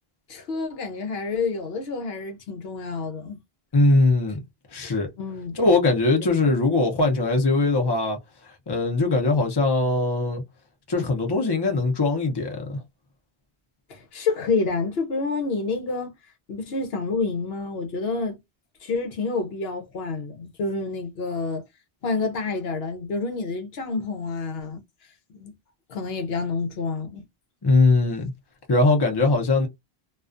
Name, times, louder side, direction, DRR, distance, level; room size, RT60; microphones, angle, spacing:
voice 1, 0.3-3.4 5.2-5.5 13.9-16.1 16.5-18.4 18.8-21.6 22.0-24.8 25.3-25.5 25.9-27.2, left 4 dB, 75° left, 0.9 m, -28 dB
voice 2, 3.7-4.4 4.7-5.1 5.6-8.2 8.7-10.4 10.9-12.8 27.6-28.3 28.7-29.7, left 2 dB, 25° left, 0.7 m, -21 dB
2.4 x 2.3 x 2.4 m
omnidirectional pair, 1.1 m